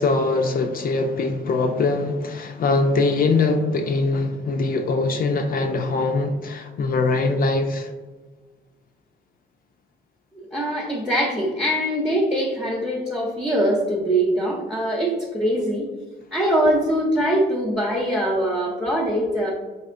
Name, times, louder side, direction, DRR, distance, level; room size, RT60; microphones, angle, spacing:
voice 1, 0.0-7.9, left 3 dB, 45° left, 0.4 m, -22 dB
voice 2, 10.5-15.9 16.3-19.5, right 1 dB, 5° right, 0.7 m, -22 dB
4.2 x 2.8 x 2.5 m
cardioid pair, 90°, 20 cm